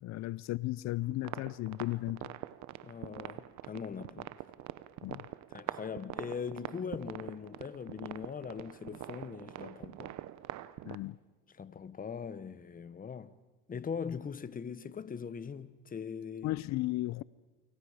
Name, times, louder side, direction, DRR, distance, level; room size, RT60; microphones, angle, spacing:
voice 1, 0.0-2.3 5.0-5.2 10.8-11.2 16.4-17.2, left 17 dB, 50° left, 0.6 m, -35 dB
sound 1, 1.1-11.0, right 14 dB, 50° right, 0.9 m, -44 dB
voice 2, 2.8-4.3 5.5-10.1 11.5-13.4 13.7-16.5, left 6 dB, 25° left, 1.2 m, -41 dB
29.0 x 25.0 x 5.0 m
supercardioid pair, 90°, 37 cm